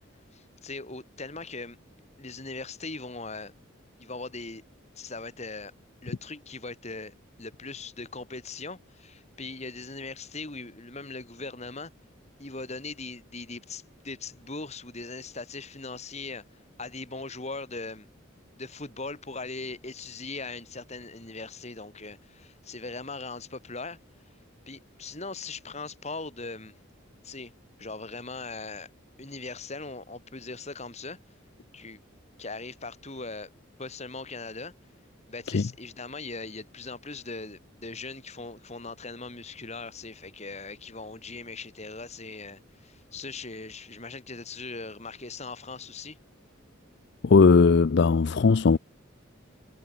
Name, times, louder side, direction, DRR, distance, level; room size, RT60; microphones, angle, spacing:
voice 1, 0.3-1.8 2.2-3.5 4.0-4.6 4.9-5.7 6.0-11.9 12.4-16.4 16.8-18.1 18.5-24.0 24.7-26.7 27.2-27.5 27.8-28.9 29.2-31.2 31.7-32.0 32.4-33.5 33.8-34.7 35.3-46.2, left 3 dB, 35° left, 2.8 m, -40 dB
voice 2, 47.2-48.8, left 4 dB, 55° left, 0.5 m, -18 dB
head